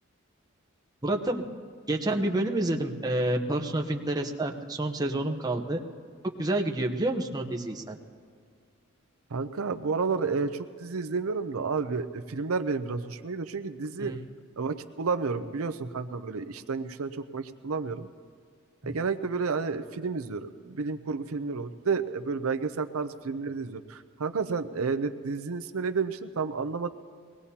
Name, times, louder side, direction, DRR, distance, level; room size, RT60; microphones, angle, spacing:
voice 1, 1.0-1.4 1.9-5.8 6.4-8.0 14.0-14.1 18.8-19.0, right 1 dB, 20° right, 1 dB, 0.9 m, -28 dB
voice 2, 9.3-14.1 14.6-18.1 18.8-26.9, right 4 dB, 85° right, 8 dB, 0.6 m, -31 dB
23.0 x 18.5 x 2.9 m, 2.1 s
head